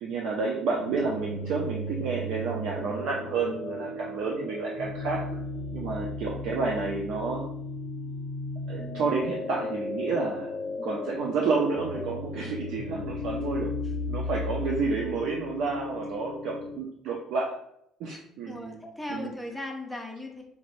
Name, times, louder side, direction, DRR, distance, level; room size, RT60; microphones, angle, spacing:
voice 1, 0.0-5.2 5.7-7.4 8.7-10.5 10.8-13.7 14.0-17.6 18.0-18.8 19.1-19.3, right 4 dB, 65° right, -1 dB, 0.6 m, -30 dB
sound 1, 0.8-16.8, left 2 dB, 50° left, 0.7 m, -35 dB
voice 2, 6.4-6.9 18.5-20.4, left 1 dB, ahead, 0 dB, 0.7 m, -38 dB
5.1 x 2.5 x 3.2 m, 0.74 s
cardioid pair, 160°, 0 cm